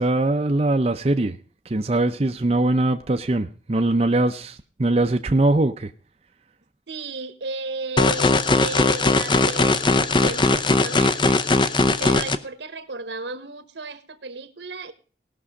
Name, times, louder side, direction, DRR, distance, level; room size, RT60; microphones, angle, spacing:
voice 1, 0.0-1.4 1.7-5.9, right 2 dB, 35° right, 0.6 m, -21 dB
voice 2, 6.9-11.4 12.0-14.9, right 3 dB, 80° right, 1.2 m, -34 dB
sound 1, 8.0-12.4, left 3 dB, 25° left, 0.6 m, -19 dB
18.0 x 6.2 x 4.8 m
head